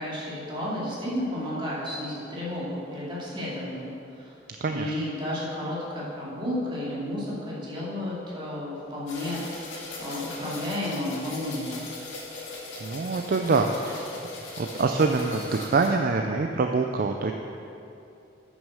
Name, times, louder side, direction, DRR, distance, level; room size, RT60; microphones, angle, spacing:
voice 1, 0.0-4.3 4.7-11.9, left 1 dB, 25° right, -7 dB, 2.5 m, -32 dB
voice 2, 4.6-4.9 12.8-14.1 14.6-17.3, right 3 dB, 50° right, 4 dB, 0.4 m, -25 dB
sound 1, 9.1-15.9, left 2 dB, 85° left, 2.0 m, -39 dB
8.9 x 6.3 x 6.4 m, 2.7 s
head